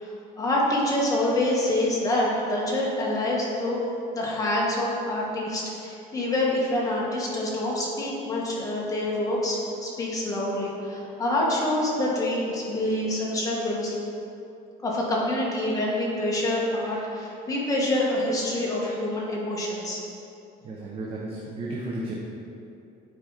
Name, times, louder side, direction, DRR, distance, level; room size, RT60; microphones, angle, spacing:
voice 1, 0.0-3.8 4.1-13.9 14.8-20.0, left 1 dB, 20° left, -4 dB, 1.5 m, -26 dB
voice 2, 20.6-22.1, right 2 dB, 35° right, -3 dB, 0.8 m, -33 dB
9.0 x 4.7 x 4.0 m, 2.7 s
cardioid pair, 155°, 17 cm